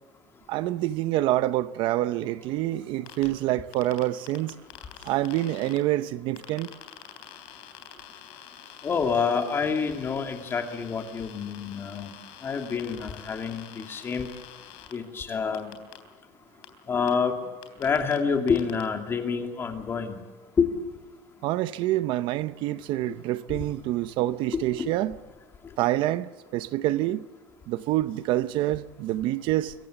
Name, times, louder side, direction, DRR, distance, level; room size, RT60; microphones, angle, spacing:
voice 1, 0.5-4.5 5.0-6.7 21.4-25.2 25.8-27.2 27.7-29.7, right 15 dB, 60° right, 0.7 m, -27 dB
sound 1, 3.1-3.3 3.7-5.8 6.4-14.9 15.5-16.0 16.6-16.7 17.1-17.2 17.6-18.2 18.5-18.8, left 11 dB, 75° left, 3.6 m, -46 dB
voice 2, 8.8-12.1 12.4-14.3 14.9-15.7 16.9-17.3 17.8-20.2 20.6-20.7 24.5-24.9, left 5 dB, 25° left, 2.5 m, -27 dB
25.0 x 15.5 x 8.2 m
cardioid pair, 160°, 10 cm